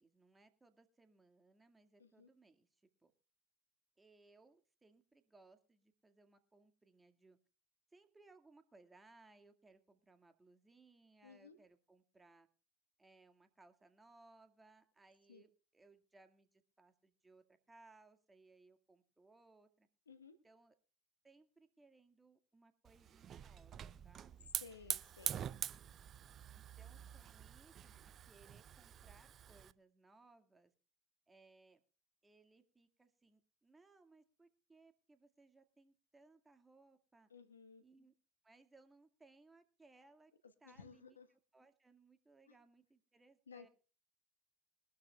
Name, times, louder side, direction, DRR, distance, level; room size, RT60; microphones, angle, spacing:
voice 1, 0.0-3.1 4.0-7.4 7.9-12.5 13.0-19.9 20.4-20.8 21.2-24.5 26.5-30.7 31.3-31.8 32.2-37.3 37.8-38.1 38.4-40.3 40.6-43.7, right 3 dB, 15° right, 7 dB, 2.0 m, -66 dB
voice 2, 11.2-11.6 15.3-15.4 20.1-20.3 24.6-25.4 37.3-37.8 40.6-41.3 43.5-43.7, left 5 dB, 90° left, 11 dB, 1.2 m, -57 dB
Hiss / Fire, 22.9-29.7, right 9 dB, 40° right, 0.6 m, -46 dB
22.5 x 12.5 x 2.3 m, 0.37 s
hypercardioid pair, 70°, 0 cm